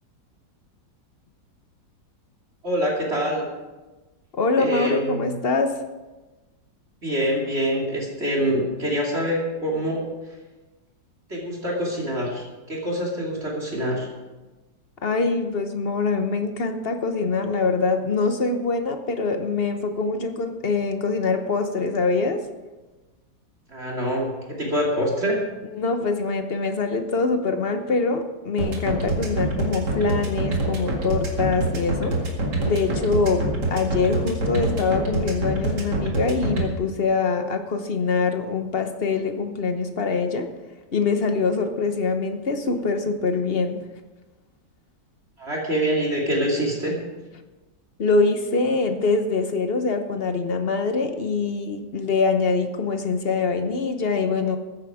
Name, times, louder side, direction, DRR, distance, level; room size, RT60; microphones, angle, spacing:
voice 1, 2.6-3.4 4.6-5.3 7.0-10.0 11.3-14.1 23.7-25.4 45.4-47.0, equal, 35° right, -2 dB, 2.9 m, -25 dB
voice 2, 4.3-5.7 15.0-22.5 25.7-32.2 32.6-40.5 40.9-43.8 48.0-54.6, left 4 dB, 45° left, 7 dB, 0.8 m, -24 dB
sound 1, 28.6-36.6, right 2 dB, 60° right, 2.7 m, -25 dB
14.0 x 10.5 x 4.9 m, 1.2 s
omnidirectional pair, 2.0 m